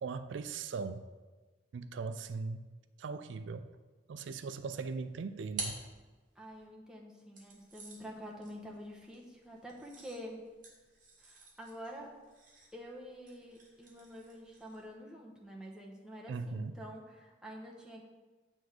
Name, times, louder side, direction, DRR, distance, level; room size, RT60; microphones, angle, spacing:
voice 1, 0.0-1.1 1.7-2.6 3.0-3.7 4.1-5.8 16.3-16.8, right 4 dB, 80° right, 11 dB, 0.4 m, -39 dB
sound 1, 5.0-6.6 7.3-14.9, right 3 dB, 45° right, 1.8 m, -49 dB
voice 2, 6.3-10.4 11.2-12.2 12.7-18.1, equal, 5° right, -2 dB, 1.0 m, -48 dB
7.8 x 3.5 x 6.4 m, 1.3 s
head